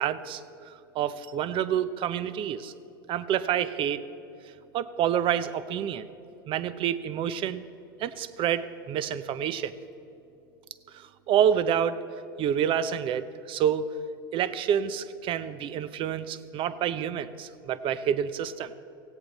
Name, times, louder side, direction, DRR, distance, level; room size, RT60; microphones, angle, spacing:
voice 1, 0.0-2.7 3.1-4.0 4.7-6.1 6.5-7.6 8.0-9.7 10.9-12.0 12.4-13.9 14.3-18.8, right 9 dB, 45° right, 13 dB, 0.8 m, -28 dB
17.0 x 16.5 x 4.2 m, 2.8 s
hypercardioid pair, 90°, 12 cm